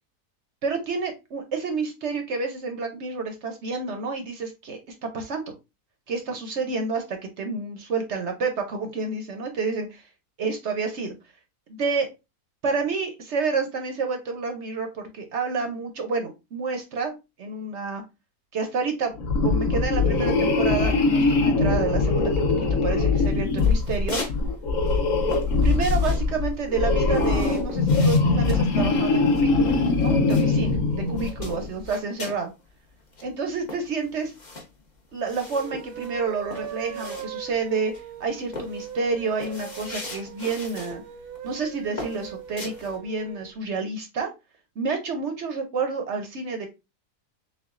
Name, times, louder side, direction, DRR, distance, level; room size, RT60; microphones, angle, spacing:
voice 1, 0.6-4.8 5.1-5.5 6.1-10.0 10.4-11.1 11.7-12.1 12.6-18.0 18.5-19.1 19.4-22.3 22.8-24.2 25.6-32.5 33.2-34.3 35.1-37.9 38.2-41.0 41.4-44.3 44.8-46.7, right 4 dB, 55° right, 5 dB, 0.8 m, -29 dB
sound 1, 19.2-31.7, left 3 dB, 60° left, 1.2 m, -22 dB
sound 2, 23.2-24.4 24.7-30.8 31.1-32.5 32.8-32.9 33.1-37.6 37.9-38.2 38.5-41.0 41.4-41.6 42.0-43.0, left 3 dB, 35° left, 0.9 m, -38 dB
sound 3, 35.4-43.5, right 9 dB, 80° right, 1.2 m, -40 dB
6.7 x 2.3 x 2.5 m, 0.25 s
omnidirectional pair, 1.7 m